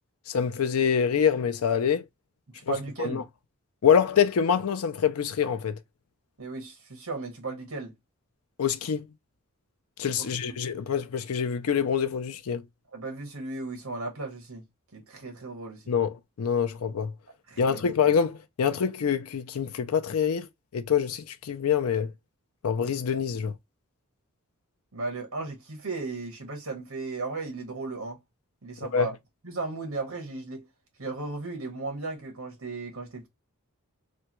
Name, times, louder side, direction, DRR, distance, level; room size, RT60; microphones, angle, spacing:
voice 1, 0.3-2.1 2.7-3.2 3.8-5.8 8.6-9.1 10.0-12.6 15.9-17.1 17.6-20.5 20.7-22.1 22.6-23.5 28.8-29.1, left 7 dB, 75° left, 0.4 m, -25 dB
voice 2, 2.5-3.3 6.4-7.9 10.2-10.8 12.9-14.6 14.9-15.9 17.5-17.8 24.9-28.2 28.6-29.2 29.4-30.7 31.0-33.3, right 3 dB, 70° right, 1.4 m, -36 dB
3.4 x 2.2 x 2.9 m
head